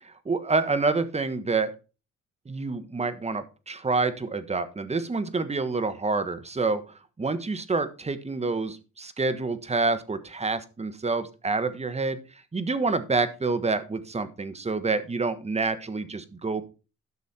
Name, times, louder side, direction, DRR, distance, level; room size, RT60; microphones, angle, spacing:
voice 1, 0.2-1.7 2.5-6.8 7.2-12.2 12.5-16.6, right 3 dB, 20° right, 12 dB, 1.3 m, -27 dB
12.5 x 6.2 x 4.3 m, 0.32 s
cardioid pair, 90°, 30 cm